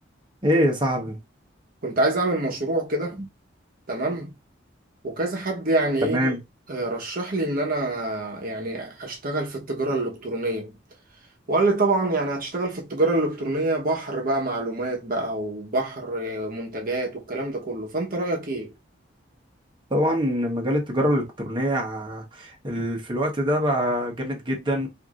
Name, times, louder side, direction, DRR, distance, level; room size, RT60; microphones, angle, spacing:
voice 1, 0.4-1.2 6.0-6.4 19.9-24.9, equal, 25° right, 1.1 m, -24 dB
voice 2, 1.8-3.2 3.9-4.3 5.0-6.3 6.7-10.8 11.5-18.7, right 2 dB, 50° right, 1.0 m, -26 dB
4.5 x 2.7 x 2.4 m
head